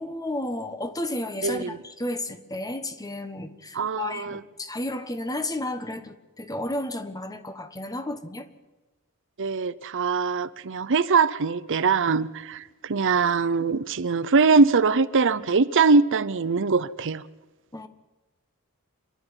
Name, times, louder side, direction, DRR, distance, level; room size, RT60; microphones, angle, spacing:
voice 1, 0.0-8.5 17.7-17.9, left 1 dB, 15° left, 1.3 m, -32 dB
voice 2, 1.4-1.8 3.7-4.4 9.4-17.2, right 4 dB, 60° right, 0.7 m, -22 dB
27.0 x 11.5 x 9.8 m
head